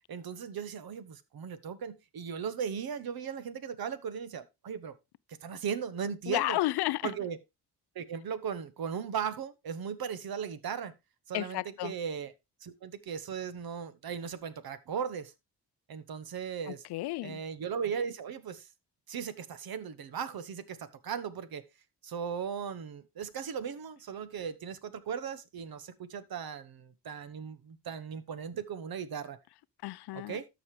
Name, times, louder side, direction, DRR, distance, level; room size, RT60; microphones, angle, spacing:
voice 1, 0.1-4.9 5.3-6.6 7.0-7.4 7.9-10.9 11.3-12.3 12.6-15.3 15.9-16.8 17.2-18.7 19.1-21.6 22.0-29.4 30.1-30.5, right 7 dB, 60° right, 1.1 m, -37 dB
voice 2, 6.3-7.0 11.3-11.9 16.9-17.4 29.8-30.4, left 17 dB, 70° left, 0.5 m, -31 dB
13.0 x 5.1 x 3.3 m
supercardioid pair, 60°, 40 cm